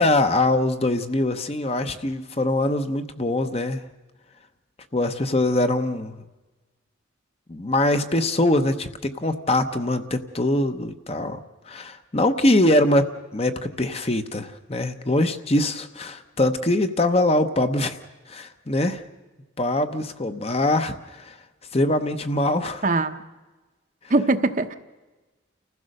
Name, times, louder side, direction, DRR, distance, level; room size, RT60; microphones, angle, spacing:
voice 1, 0.0-3.8 4.9-6.2 7.5-11.4 11.7-18.0 18.3-19.0 19.6-21.4 21.7-22.8, left 1 dB, 30° left, 8 dB, 0.9 m, -23 dB
voice 2, 22.8-23.2 24.1-24.7, right 2 dB, 40° right, 8 dB, 0.9 m, -21 dB
30.0 x 15.5 x 6.6 m, 1.2 s
head